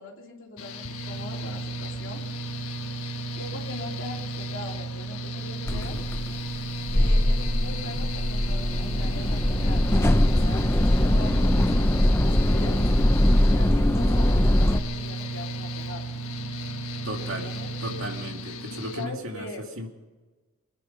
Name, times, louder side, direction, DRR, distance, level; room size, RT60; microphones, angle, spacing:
voice 1, 0.0-2.2 3.3-6.0 6.9-10.6 11.0-12.8 13.4-16.0 17.2-17.7 18.6-19.7, left 2 dB, 60° left, -1 dB, 3.1 m, -41 dB
Mechanical fan, 0.6-19.1, right 2 dB, 85° left, 1.4 m, -34 dB
sound 1, 5.7-14.8, left 1 dB, 10° left, 0.6 m, -22 dB
voice 2, 5.7-6.1 17.0-17.5 17.8-19.5 19.8-19.9, equal, 65° right, 3 dB, 2.4 m, -35 dB
25.0 x 10.0 x 5.6 m, 1.3 s
head